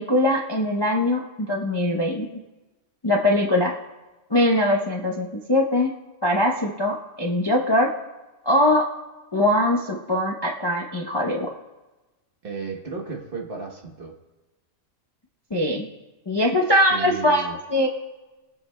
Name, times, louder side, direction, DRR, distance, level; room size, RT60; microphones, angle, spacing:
voice 1, 0.0-2.3 3.0-3.7 4.3-5.9 6.2-7.9 8.4-8.9 9.3-11.5 15.5-15.9 16.3-17.4 17.7-17.9, left 1 dB, 25° left, 0 dB, 0.6 m, -21 dB
voice 2, 12.4-14.1 16.9-17.5, right 4 dB, 45° right, 2 dB, 1.2 m, -34 dB
23.0 x 7.9 x 2.2 m, 1.1 s
omnidirectional pair, 1.4 m